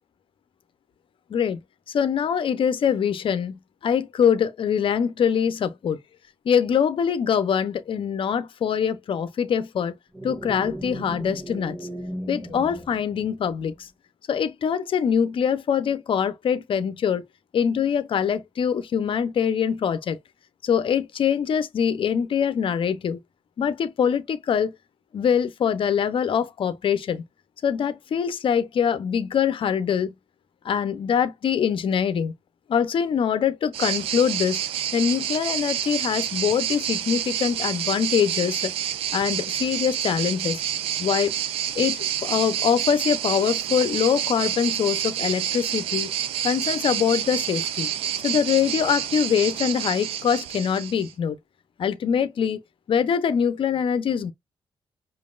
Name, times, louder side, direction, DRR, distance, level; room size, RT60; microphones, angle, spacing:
voice 1, 1.9-6.0 6.4-9.9 10.2-11.8 12.3-13.9 14.3-17.2 17.5-20.2 20.6-23.2 23.6-24.7 25.1-27.2 27.6-30.1 30.6-32.3 32.7-34.6 34.9-38.7 39.1-40.6 41.0-41.3 41.7-46.1 46.4-47.9 48.2-51.4 51.8-52.6 52.9-54.3, left 7 dB, 65° left, 0.7 m, -23 dB
sound 1, 10.1-13.8, right 1 dB, 10° right, 1.4 m, -36 dB
sound 2, 33.7-51.1, right 10 dB, 90° right, 0.5 m, -28 dB
5.1 x 2.6 x 2.5 m
supercardioid pair, 55°, 9 cm